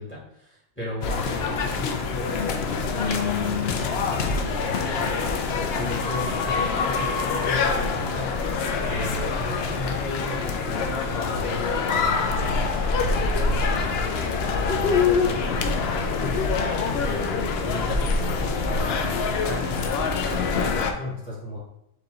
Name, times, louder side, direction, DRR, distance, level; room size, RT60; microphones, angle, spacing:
voice 1, 0.0-8.3 8.8-21.6, left 1 dB, 10° left, -5 dB, 1.3 m, -36 dB
sound 1, 1.0-20.9, left 4 dB, 70° left, 0.6 m, -25 dB
4.7 x 2.8 x 3.7 m, 0.84 s
omnidirectional pair, 1.6 m